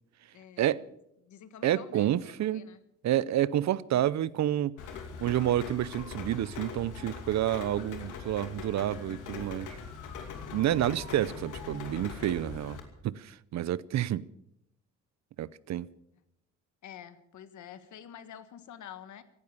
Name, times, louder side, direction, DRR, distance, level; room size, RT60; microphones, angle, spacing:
voice 1, 0.3-0.9 1.2-2.8 16.8-19.2, left 9 dB, 70° left, 1.6 m, -48 dB
voice 2, 1.6-2.6 3.0-4.8 5.2-9.8 10.5-12.8 13.0-14.3 15.4-15.9, right 12 dB, 65° right, 0.7 m, -29 dB
Rain, 4.8-12.8, left 5 dB, 90° left, 2.7 m, -41 dB
16.5 x 12.0 x 7.1 m
cardioid pair, 90°, 30 cm